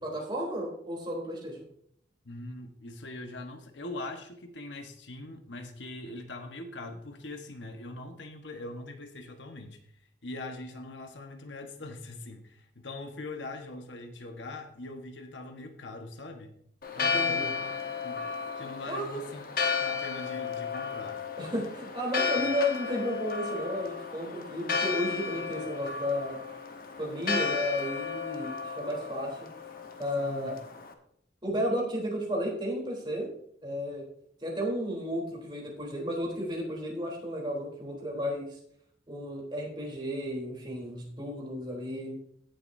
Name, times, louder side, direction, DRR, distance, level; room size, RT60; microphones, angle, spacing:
voice 1, 0.0-1.6 16.9-17.5 18.9-19.2 21.4-26.4 27.0-29.3 30.0-30.6 31.4-33.3 33.6-34.0 34.4-38.6 39.1-42.2, equal, 25° right, -2 dB, 3.5 m, -33 dB
voice 2, 2.2-9.8 10.2-16.6 16.9-17.7 18.0-18.2 18.6-19.4 19.8-21.2 30.1-30.5, left 2 dB, 80° left, 5 dB, 1.3 m, -42 dB
Church bell, 16.8-30.9, left 5 dB, 50° left, 1.2 m, -33 dB
17.0 x 7.9 x 2.7 m, 0.68 s
head